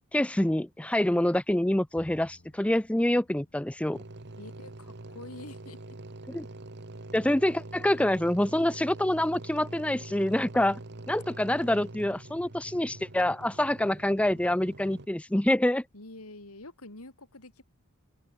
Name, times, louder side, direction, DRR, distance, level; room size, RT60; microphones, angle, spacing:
voice 1, 0.1-4.0 6.3-6.5 7.1-10.8 11.1-15.8, left 1 dB, 5° left, 0.5 m, -26 dB
Bowed string instrument, 1.9-5.3, equal, 60° left, 5.2 m, -59 dB
sound 1, 3.9-15.1, right 2 dB, 50° right, 1.5 m, -44 dB
voice 2, 4.4-6.0 15.9-17.6, left 2 dB, 80° left, 3.6 m, -46 dB
open air
head